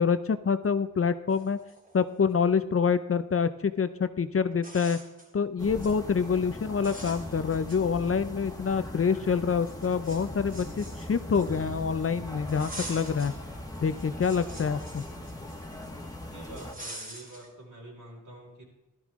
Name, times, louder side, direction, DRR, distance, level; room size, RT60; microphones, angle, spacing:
voice 1, 0.0-1.6 1.9-5.0 5.3-13.3 13.8-15.0, left 6 dB, 45° left, 12 dB, 0.6 m, -26 dB
sound 1, 0.9-1.0 1.3-2.4 3.9-4.0 4.5-5.3 5.6-6.0 6.4-6.6 6.8-8.3 8.7-8.8 9.6-11.8 12.5-13.4 13.8-15.9 16.6-17.5, right 1 dB, 25° right, 3.0 m, -45 dB
sound 2, 5.6-16.7, left 1 dB, 10° left, 1.8 m, -40 dB
voice 2, 15.0-15.6 16.2-18.6, right 1 dB, 70° right, -3 dB, 5.2 m, -47 dB
16.0 x 12.5 x 3.7 m, 0.99 s
wide cardioid pair, 135°, 32 cm